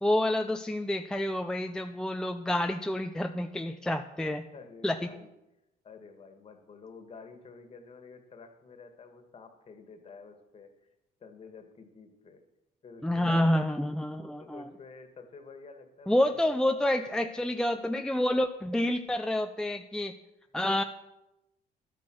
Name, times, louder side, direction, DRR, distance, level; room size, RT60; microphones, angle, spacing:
voice 1, 0.0-4.4 4.8-5.1 13.0-14.7 16.1-20.1 20.5-20.8, left 1 dB, 5° left, 6 dB, 0.5 m, -28 dB
voice 2, 4.2-5.3 5.8-10.9 11.2-12.4 12.8-13.5 14.4-16.6, left 4 dB, 35° left, 7 dB, 1.7 m, -50 dB
11.5 x 8.4 x 6.3 m, 0.94 s
cardioid pair, 110°, 17 cm